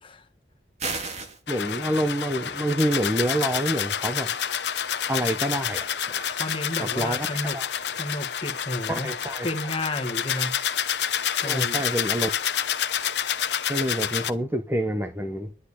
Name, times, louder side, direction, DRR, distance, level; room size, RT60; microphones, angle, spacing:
sound 1, 0.8-1.4, right 4 dB, 40° right, 2.1 m, -31 dB
sound 2, 1.5-14.3, left 9 dB, 70° left, 0.9 m, -28 dB
voice 1, 1.5-4.3 5.1-6.3 6.8-7.3 7.5-7.6 8.9-9.5 11.4-12.3 13.7-15.7, right 1 dB, 10° right, 1.0 m, -27 dB
voice 2, 6.3-7.6 7.9-9.1 9.4-10.5 11.4-11.8, left 1 dB, 30° left, 1.6 m, -31 dB
11.0 x 10.5 x 6.8 m
head